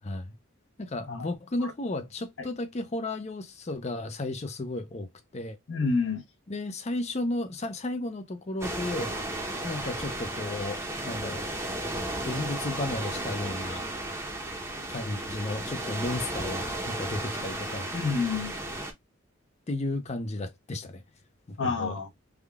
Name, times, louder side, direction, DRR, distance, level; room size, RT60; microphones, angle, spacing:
voice 1, 0.0-0.3 0.8-5.6 6.5-9.2 9.6-11.5 12.2-13.8 14.9-17.9 19.7-21.0 21.5-22.0, left 2 dB, 35° left, 0.5 m, -33 dB
voice 2, 5.7-6.2 17.9-18.5 21.6-22.1, left 4 dB, 65° left, 1.0 m, -28 dB
sound 1, 8.6-18.9, right 1 dB, 15° right, 0.8 m, -34 dB
3.5 x 2.3 x 3.4 m
head